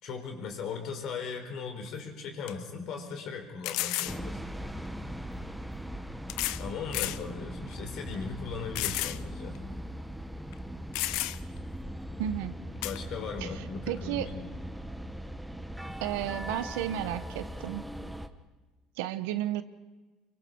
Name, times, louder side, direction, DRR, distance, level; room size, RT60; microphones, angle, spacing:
voice 1, 0.0-4.4 6.6-9.6 12.7-14.3, left 5 dB, 60° left, 4 dB, 4.6 m, -38 dB
sound 1, 1.9-2.0 2.5-2.6 3.6-4.2 5.3-5.4 6.3-6.6 6.9-7.2 7.7-7.8 8.8-9.2 9.6-9.7 10.5-10.6 10.9-11.6 12.8-13.0, left 17 dB, 75° left, 0.7 m, -32 dB
sound 2, 4.1-18.3, equal, 5° right, 1.3 m, -40 dB
voice 2, 12.2-12.6 13.4-13.5 13.9-14.3 16.0-17.9 19.0-19.6, right 12 dB, 90° right, 12 dB, 1.2 m, -32 dB
27.5 x 24.0 x 4.8 m, 1.2 s
supercardioid pair, 110°, 0 cm